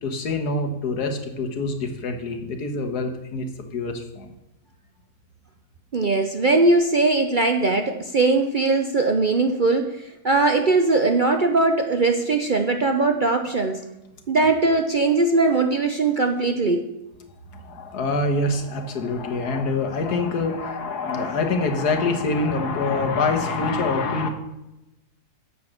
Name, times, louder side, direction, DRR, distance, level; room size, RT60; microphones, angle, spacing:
voice 1, 0.0-4.3 17.5-24.3, left 3 dB, 85° left, 6 dB, 1.8 m, -25 dB
voice 2, 5.9-10.0 10.2-13.8 14.3-16.8, right 3 dB, 50° right, 5 dB, 0.6 m, -20 dB
9.8 x 7.1 x 6.5 m, 0.93 s
omnidirectional pair, 1.7 m